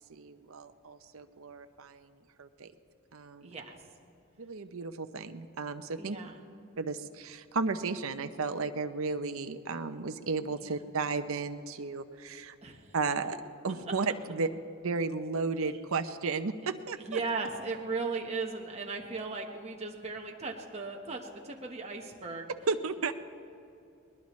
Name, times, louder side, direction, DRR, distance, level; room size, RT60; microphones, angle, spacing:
voice 1, 0.1-2.1 2.4-2.7 3.1-3.5 4.4-6.2 6.8-12.5 12.9-13.4 13.6-14.5 14.8-17.2 22.7-23.1, right 4 dB, 70° right, 8 dB, 0.7 m, -34 dB
voice 2, 3.4-3.8 6.0-6.4 10.6-10.8 12.6-12.9 17.0-22.5, right 4 dB, 30° right, 0 dB, 1.3 m, -37 dB
21.0 x 20.5 x 3.2 m, 2.7 s
head